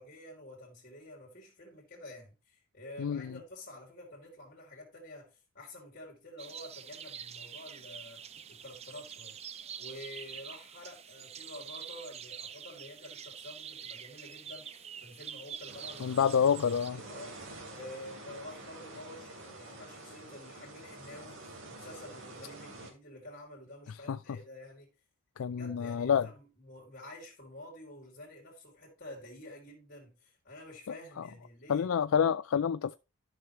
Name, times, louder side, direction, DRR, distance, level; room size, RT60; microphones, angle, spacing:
voice 1, 0.0-9.4 9.8-16.3 16.9-17.4 17.7-24.9 25.4-31.9, left 1 dB, 45° left, 2.9 m, -49 dB
voice 2, 3.0-3.3 16.0-17.0 24.1-24.2 25.4-26.3 31.2-31.3 31.7-33.0, left 7 dB, 85° left, 0.4 m, -28 dB
sound 1, 6.4-16.9, right 8 dB, 30° right, 0.5 m, -46 dB
sound 2, 15.7-22.9, right 2 dB, 80° right, 3.0 m, -48 dB
12.5 x 6.1 x 3.1 m
head